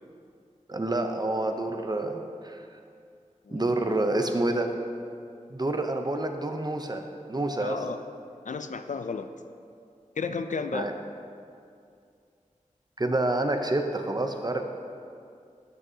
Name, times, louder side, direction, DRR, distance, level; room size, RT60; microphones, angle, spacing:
voice 1, 0.7-2.7 3.5-4.7 5.5-7.0 7.3-7.8 10.7-10.9 13.0-14.6, right 2 dB, 30° right, 5 dB, 0.7 m, -28 dB
voice 2, 7.6-8.0 8.5-9.3 10.2-10.9, left 5 dB, 65° left, 9 dB, 0.4 m, -33 dB
12.0 x 6.2 x 2.8 m, 2.4 s
wide cardioid pair, 50°, 14 cm